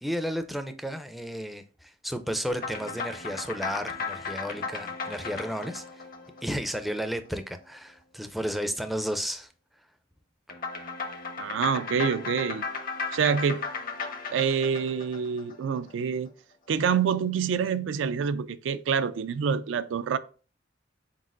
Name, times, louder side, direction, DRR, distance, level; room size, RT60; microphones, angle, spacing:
voice 1, 0.0-6.1 6.4-9.5, equal, ahead, 0.4 m, -33 dB
sound 1, 2.5-7.2 10.5-15.9, left 5 dB, 50° left, 0.7 m, -36 dB
voice 2, 11.4-12.6 13.1-13.6 14.3-16.3 16.7-20.2, right 6 dB, 90° right, 0.3 m, -26 dB
4.4 x 4.0 x 2.4 m
head